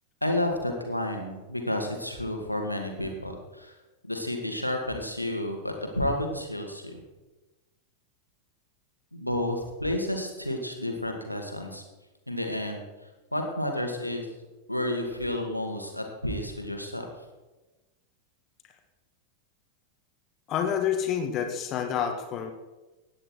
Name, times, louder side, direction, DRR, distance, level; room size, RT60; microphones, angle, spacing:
voice 1, 0.2-3.8 4.1-7.0 9.1-11.8 12.3-14.3 14.7-17.1, left 1 dB, 90° left, 3 dB, 2.1 m, -31 dB
voice 2, 20.5-22.5, left 8 dB, 35° left, 5 dB, 1.6 m, -28 dB
17.0 x 10.0 x 4.6 m, 1.1 s
figure-of-eight pair, 90°, 0 cm